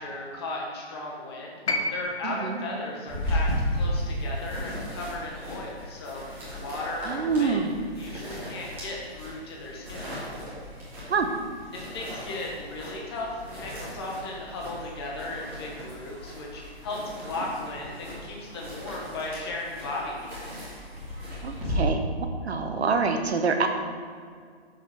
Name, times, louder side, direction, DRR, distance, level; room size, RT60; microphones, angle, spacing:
voice 1, 0.0-10.1 11.7-20.4, left 2 dB, 25° left, -2 dB, 1.2 m, -36 dB
sound 1, 1.7-5.8 7.0-7.1, left 2 dB, 80° left, 1.2 m, -35 dB
voice 2, 2.2-2.6 7.0-7.7 11.1-11.3 21.4-22.1 22.4-23.7, right 5 dB, 75° right, 6 dB, 1.0 m, -26 dB
sound 2, 3.1-21.7, equal, 5° right, 1.3 m, -36 dB
6.6 x 5.2 x 4.3 m, 2.1 s
hypercardioid pair, 165°, 32 cm